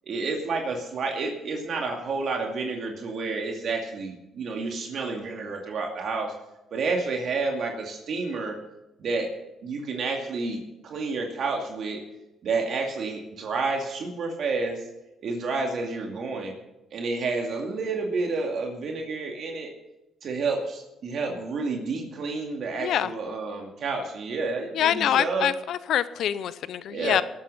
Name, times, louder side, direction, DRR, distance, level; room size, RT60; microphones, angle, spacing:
voice 1, 0.0-6.3 6.7-8.6 9.0-9.3 9.6-12.0 12.4-14.8 15.2-16.6 16.9-19.7 20.2-25.5 26.9-27.2, right 3 dB, 60° right, 1 dB, 2.3 m, -30 dB
voice 2, 22.8-23.1 24.7-27.2, left 10 dB, 75° left, 15 dB, 0.7 m, -25 dB
19.5 x 8.7 x 5.6 m, 0.95 s
cardioid pair, 90°, 0 cm